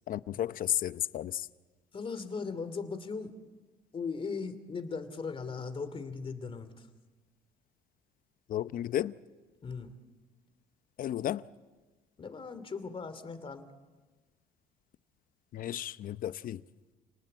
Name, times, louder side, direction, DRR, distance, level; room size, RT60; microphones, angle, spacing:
voice 1, 0.1-1.5 8.5-9.1 11.0-11.4 15.5-16.6, left 11 dB, 55° left, 0.7 m, -33 dB
voice 2, 1.9-3.3 3.9-6.9 9.6-9.9 12.2-13.7, left 5 dB, 30° left, 2.6 m, -38 dB
30.0 x 19.5 x 8.6 m
cardioid pair, 110°, 17 cm